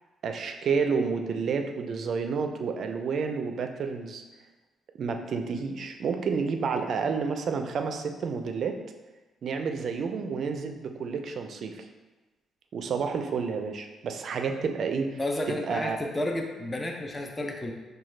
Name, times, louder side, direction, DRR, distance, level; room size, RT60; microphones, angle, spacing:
voice 1, 0.2-4.2 5.0-8.8 9.4-11.8 12.7-15.2 15.5-16.0, right 5 dB, 60° right, 5 dB, 0.4 m, -30 dB
voice 2, 15.2-17.7, left 1 dB, 20° left, 2 dB, 0.5 m, -31 dB
5.7 x 2.3 x 3.1 m, 1.2 s
cardioid pair, 90°, 0 cm